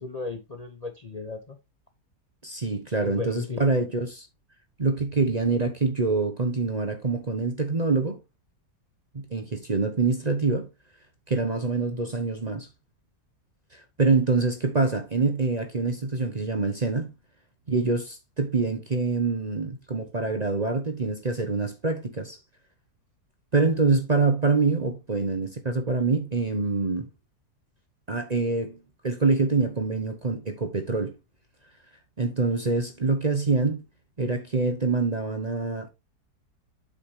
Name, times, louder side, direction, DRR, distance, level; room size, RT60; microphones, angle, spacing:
voice 1, 0.0-1.6 3.0-3.6, left 4 dB, 35° left, 0.7 m, -35 dB
voice 2, 2.4-4.3 4.8-8.2 9.1-10.7 11.3-12.7 13.7-17.1 17.7-22.4 23.5-27.1 28.1-28.8 29.0-31.2 32.2-33.8 34.2-35.9, right 3 dB, 30° right, 0.9 m, -25 dB
7.9 x 5.8 x 3.2 m
omnidirectional pair, 1.7 m